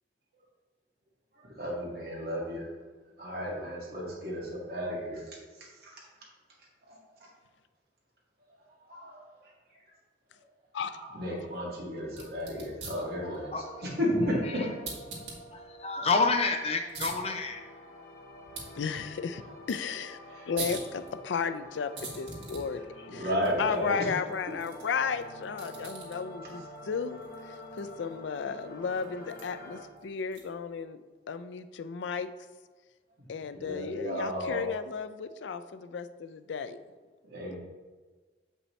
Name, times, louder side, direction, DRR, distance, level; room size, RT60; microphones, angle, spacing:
voice 1, 1.3-2.7 3.2-6.0 6.9-7.0 8.6-9.8 10.8-13.5 13.8-14.3 19.5-19.6 20.3-20.5 23.1-24.2 33.6-34.7 37.2-37.6, equal, 60° right, -4 dB, 2.0 m, -34 dB
sound 1, 12.0-30.7, right 3 dB, 90° right, 2.0 m, -47 dB
sound 2, 13.0-29.8, equal, 55° left, 1.1 m, -48 dB
voice 2, 15.5-17.6, left 3 dB, 35° left, 5 dB, 0.5 m, -28 dB
voice 3, 18.8-20.2 20.5-23.2 23.6-32.3 33.3-36.8 37.5-37.6, left 6 dB, 90° left, 11 dB, 0.4 m, -34 dB
7.4 x 5.4 x 3.2 m, 1.4 s
head